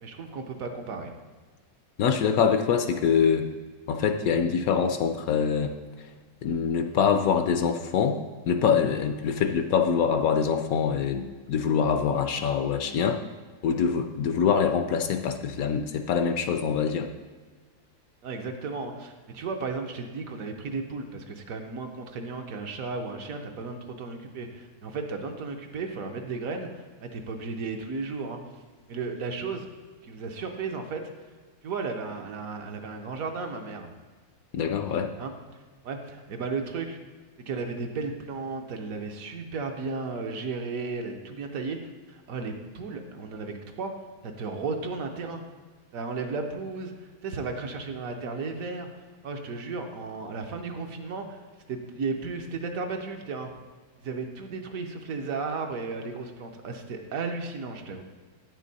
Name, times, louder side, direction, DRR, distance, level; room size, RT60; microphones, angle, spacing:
voice 1, 0.0-1.1 18.2-28.4 28.9-29.7 30.0-31.0 31.6-33.9 35.2-35.3 35.8-37.0 37.4-43.9 44.2-45.4 45.9-48.9 49.2-51.4 51.7-53.5 54.0-58.0, right 4 dB, 65° right, 4 dB, 1.1 m, -34 dB
voice 2, 2.0-3.5 3.9-5.7 6.4-8.2 8.5-13.2 13.6-17.1 34.5-35.1, left 7 dB, 70° left, 7 dB, 0.9 m, -24 dB
9.3 x 6.4 x 4.0 m, 1.4 s
omnidirectional pair, 1.7 m